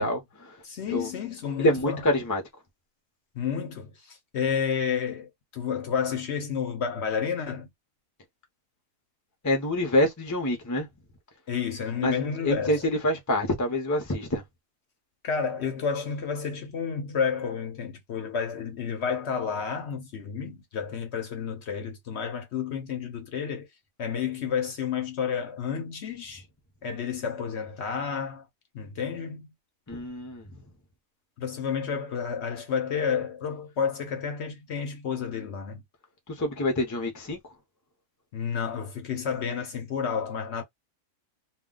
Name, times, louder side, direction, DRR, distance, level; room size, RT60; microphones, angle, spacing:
voice 1, 0.0-0.5 0.9-1.1 1.6-2.4 9.4-10.9 12.0-14.4 29.9-30.5 36.4-37.4, left 1 dB, 20° left, 0.5 m, -26 dB
voice 2, 0.6-2.1 3.3-7.7 11.5-12.8 15.2-23.7 24.0-26.4 26.8-28.5 28.7-29.5 31.4-35.8 38.3-40.6, left 7 dB, 60° left, 0.9 m, -30 dB
2.3 x 2.3 x 3.7 m
omnidirectional pair, 1.4 m